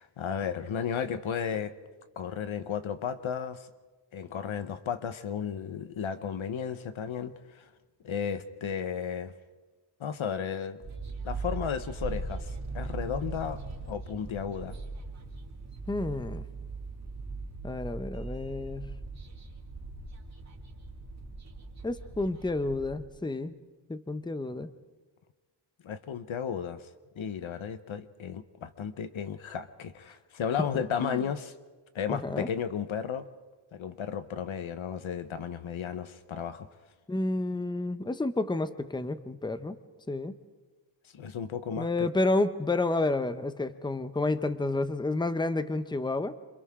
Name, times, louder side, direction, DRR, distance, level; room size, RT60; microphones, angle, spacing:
voice 1, 0.0-1.7 2.2-3.7 4.1-7.6 8.0-9.3 10.0-10.8 11.2-13.6 13.9-14.7 25.8-26.8 27.1-31.5 31.9-33.3 33.7-36.7 41.1-42.1, left 7 dB, 90° left, 11 dB, 1.2 m, -34 dB
sound 1, 10.8-23.1, right 3 dB, 35° right, 2.5 m, -39 dB
voice 2, 15.9-16.4 17.6-18.9 21.8-23.6 23.9-24.7 31.0-31.2 32.1-32.5 37.1-39.8 40.1-40.3 41.8-46.3, left 2 dB, 10° left, 11 dB, 0.8 m, -30 dB
28.0 x 27.0 x 3.7 m, 1.3 s
wide cardioid pair, 150°, 46 cm